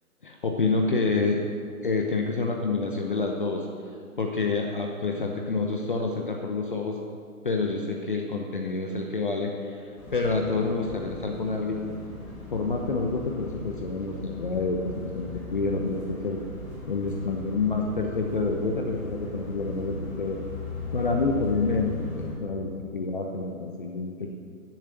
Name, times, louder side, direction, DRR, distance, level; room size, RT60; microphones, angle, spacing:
voice 1, 0.2-1.4 1.8-3.7 4.2-7.0 7.4-11.9 12.5-16.4 16.9-20.4 20.9-24.3, left 3 dB, 35° left, 1 dB, 0.9 m, -28 dB
sound 1, 9.9-22.3, left 2 dB, 5° left, 2.2 m, -38 dB
13.5 x 7.5 x 6.8 m, 2.2 s
hypercardioid pair, 170°, 44 cm